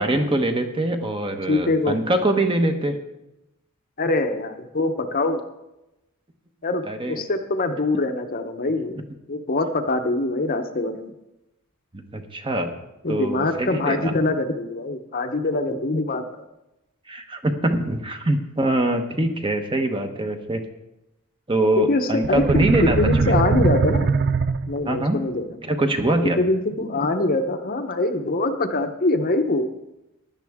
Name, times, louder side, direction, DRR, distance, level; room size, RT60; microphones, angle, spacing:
voice 1, 0.0-3.0 6.9-7.2 12.1-12.7 13.1-14.1 17.1-20.6 21.5-23.0 23.2-23.3 24.8-25.2 25.6-26.4, right 1 dB, 25° right, 5 dB, 1.0 m, -23 dB
voice 2, 1.5-2.0 4.0-5.4 6.6-9.0 9.3-11.1 13.0-16.2 21.8-22.7 23.0-24.1 24.7-25.6 26.4-29.7, left 2 dB, 40° left, 7 dB, 0.8 m, -24 dB
sound 1, 22.2-25.0, right 4 dB, 50° right, 0.5 m, -21 dB
16.0 x 10.5 x 3.6 m, 0.93 s
head